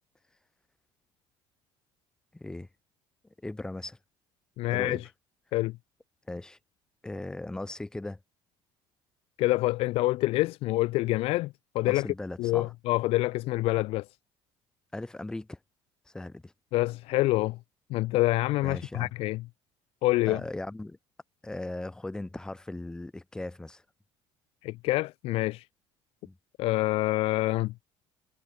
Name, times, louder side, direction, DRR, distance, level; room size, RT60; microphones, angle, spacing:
voice 1, 2.3-2.7 3.4-4.0 4.6-5.0 6.3-6.6 7.0-8.2 11.8-12.7 14.9-15.6 16.1-16.5 18.6-19.1 20.3-21.0 21.4-23.8 26.2-26.4, left 2 dB, 5° left, 2.3 m, -38 dB
voice 2, 4.6-5.1 5.5-5.8 9.4-12.1 12.4-14.1 16.7-17.6 17.9-19.4 20.0-20.4 24.6-25.7 26.6-27.7, left 19 dB, 65° left, 2.4 m, -26 dB
cardioid pair, 170°, 11 cm